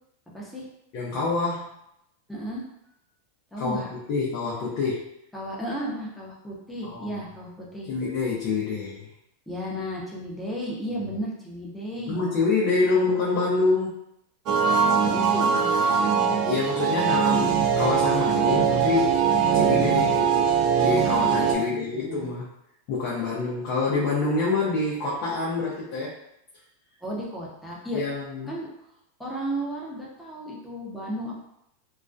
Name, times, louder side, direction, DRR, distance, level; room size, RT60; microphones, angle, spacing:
voice 1, 0.3-0.7 2.3-2.6 3.5-3.9 5.3-7.9 9.5-12.2 14.8-16.2 21.5-22.3 27.0-28.0 28.5-28.7 29.2-31.3, equal, ahead, -5 dB, 0.6 m, -34 dB
voice 2, 0.9-1.7 3.6-5.1 6.8-7.1 7.9-9.1 12.1-14.0 16.2-19.2 19.5-22.5 22.9-26.1 27.9-28.5, left 3 dB, 45° left, -5 dB, 0.5 m, -26 dB
sound 1, 14.5-21.5, right 6 dB, 40° right, 0.3 m, -22 dB
2.2 x 2.2 x 2.5 m, 0.80 s
supercardioid pair, 145°, 0 cm